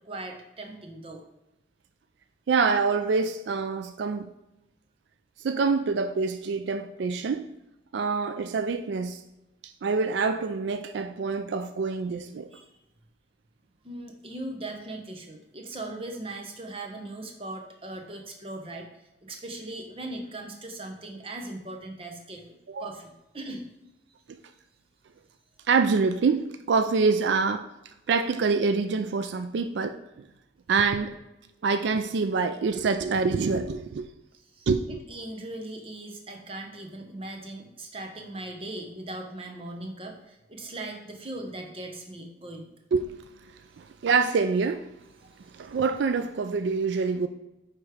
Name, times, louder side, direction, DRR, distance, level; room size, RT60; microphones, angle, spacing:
voice 1, 0.0-1.2 12.5-12.7 13.8-23.7 34.4-42.7, right 2 dB, 30° right, 0.9 m, -39 dB
voice 2, 2.5-4.3 5.4-7.5 7.9-9.2 9.6-12.5 22.7-22.9 25.7-27.7 28.1-30.3 30.7-31.1 31.6-34.1 34.7-35.0 42.9-43.1 43.8-44.9 45.5-47.3, right 4 dB, 80° right, 0.4 m, -26 dB
9.4 x 3.2 x 4.8 m
head